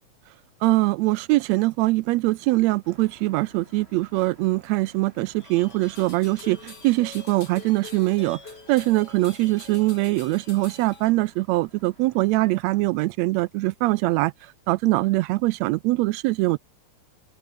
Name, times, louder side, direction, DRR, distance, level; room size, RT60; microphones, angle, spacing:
voice 1, 0.6-8.4 8.7-14.3 14.7-16.6, right 20 dB, 80° right, 1.7 m, -22 dB
sound 1, 2.8-12.9, right 1 dB, 20° right, 6.5 m, -56 dB
sound 2, 5.4-11.1, left 4 dB, 35° left, 4.1 m, -45 dB
open air
omnidirectional pair, 3.3 m